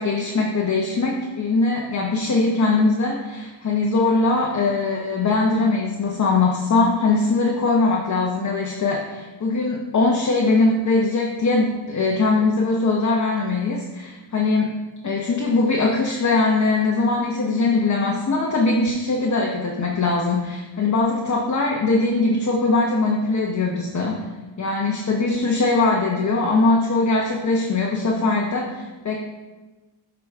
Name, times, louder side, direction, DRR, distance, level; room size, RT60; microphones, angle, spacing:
voice 1, 0.0-14.7 15.0-24.3 24.6-29.2, left 3 dB, 35° left, -1 dB, 1.0 m, -21 dB
8.1 x 5.0 x 3.6 m, 1.2 s
cardioid pair, 90°, 47 cm